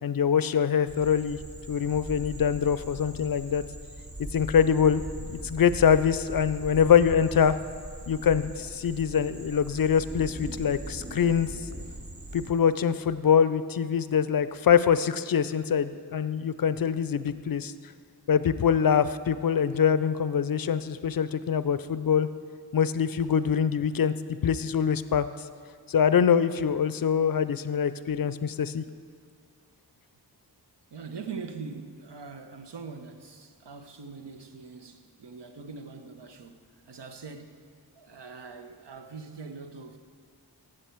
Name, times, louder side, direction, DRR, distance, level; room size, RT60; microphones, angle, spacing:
voice 1, 0.0-1.4 1.7-3.6 4.3-7.6 8.1-11.5 12.3-17.7 18.3-22.3 22.7-24.1 24.4-25.3 25.9-28.8, left 7 dB, 55° left, 14 dB, 0.5 m, -24 dB
sound 1, 0.9-12.5, right 1 dB, 30° right, 1.0 m, -41 dB
voice 2, 30.9-36.6 36.9-37.6 38.0-40.0, right 5 dB, 75° right, 7 dB, 0.9 m, -42 dB
15.0 x 7.8 x 4.5 m, 2.2 s
wide cardioid pair, 60°, 42 cm